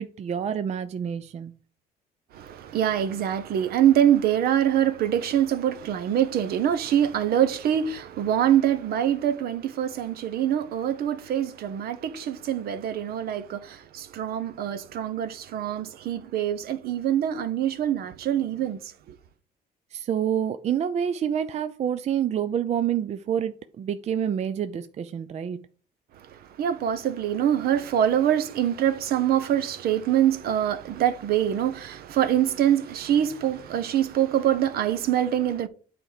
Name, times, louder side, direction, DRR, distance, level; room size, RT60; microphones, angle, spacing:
voice 1, 0.0-1.5 19.9-25.6, right 9 dB, 40° right, 0.5 m, -28 dB
voice 2, 2.3-18.8 26.2-35.7, right 10 dB, 65° right, 0.9 m, -24 dB
8.9 x 4.4 x 5.0 m
cardioid pair, 110°, 17 cm